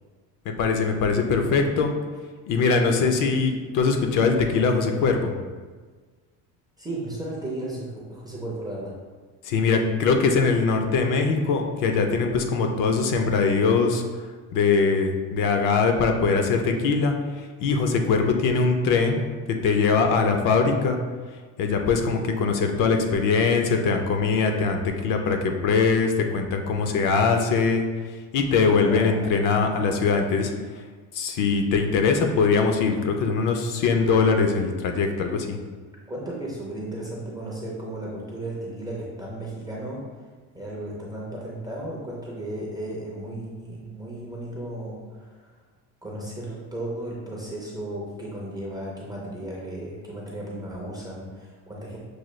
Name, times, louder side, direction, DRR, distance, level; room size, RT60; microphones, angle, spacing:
voice 1, 0.5-1.9 2.5-5.3 9.4-14.0 14.5-19.2 19.5-21.0 21.6-30.5 31.1-35.6, left 4 dB, 50° left, 4 dB, 0.5 m, -22 dB
voice 2, 1.2-1.7 6.8-9.0 28.8-29.3 36.1-40.1 40.5-45.5 46.0-52.0, right 1 dB, 10° right, -5 dB, 0.4 m, -35 dB
6.2 x 2.2 x 3.1 m, 1.4 s
cardioid pair, 160°, 43 cm